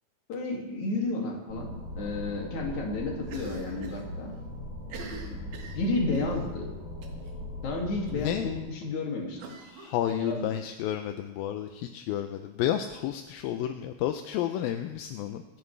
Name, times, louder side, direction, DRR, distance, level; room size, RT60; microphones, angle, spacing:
voice 1, 0.3-4.3 5.0-6.7 7.6-9.6 10.1-10.5, left 3 dB, 50° left, 0 dB, 3.5 m, -32 dB
sound 1, 1.5-8.6, left 1 dB, 15° right, 4.9 m, -39 dB
Cough, 3.2-4.0 4.3-4.4 4.8-6.4 7.0-7.3 7.6-7.7 8.1-8.2 9.4-10.6, right 4 dB, 60° right, 2.7 m, -45 dB
voice 2, 8.1-8.5 9.7-15.6, left 11 dB, 80° left, 7 dB, 2.3 m, -31 dB
25.5 x 11.0 x 3.3 m, 1.1 s
omnidirectional pair, 4.6 m